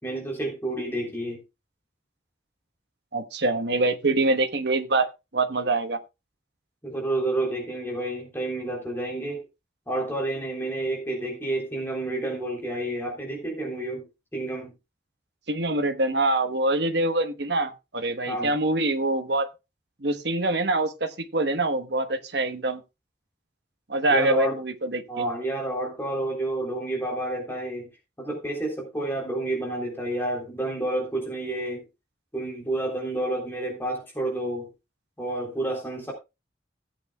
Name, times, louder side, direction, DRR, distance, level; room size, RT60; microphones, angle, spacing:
voice 1, 0.0-1.4 6.8-9.4 9.9-14.1 14.3-14.7 18.3-18.5 24.1-24.6 25.1-27.9 28.2-31.8 32.3-34.7 35.2-36.1, right 1 dB, 10° left, 3.5 m, -29 dB
voice 2, 3.1-5.1 5.3-6.0 15.5-19.5 20.0-22.8 23.9-25.3, right 2 dB, 60° right, 1.2 m, -25 dB
16.0 x 8.6 x 2.3 m
head